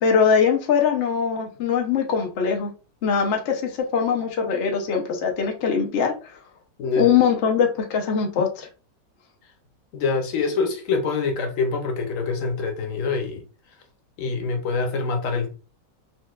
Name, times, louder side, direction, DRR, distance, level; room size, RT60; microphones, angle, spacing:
voice 1, 0.0-2.7 3.0-6.1 7.0-8.7, left 6 dB, 85° left, 3 dB, 0.6 m, -21 dB
voice 2, 9.9-13.4 14.2-15.5, left 4 dB, 60° left, 3 dB, 0.9 m, -25 dB
4.2 x 2.2 x 2.3 m, 0.34 s
omnidirectional pair, 1.9 m